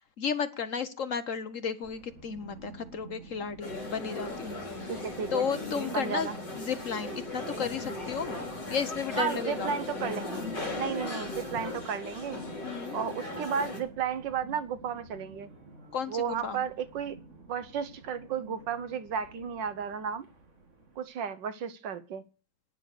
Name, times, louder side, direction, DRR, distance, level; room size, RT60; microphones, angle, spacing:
voice 1, 0.2-5.0 5.3-8.4 8.7-9.7 12.6-13.0 15.9-16.6, left 6 dB, 55° left, 11 dB, 1.1 m, -33 dB
sound 1, 1.8-21.0, right 2 dB, 40° right, 2.6 m, -50 dB
sound 2, 3.6-13.8, left 2 dB, 70° left, 3.7 m, -37 dB
voice 2, 4.9-5.5 5.9-6.3 9.2-10.3 10.8-12.4 12.9-15.5 16.1-17.2 17.5-20.2 21.0-22.2, right 7 dB, 80° right, 13 dB, 1.7 m, -33 dB
10.5 x 9.9 x 6.6 m, 0.35 s
omnidirectional pair, 1.9 m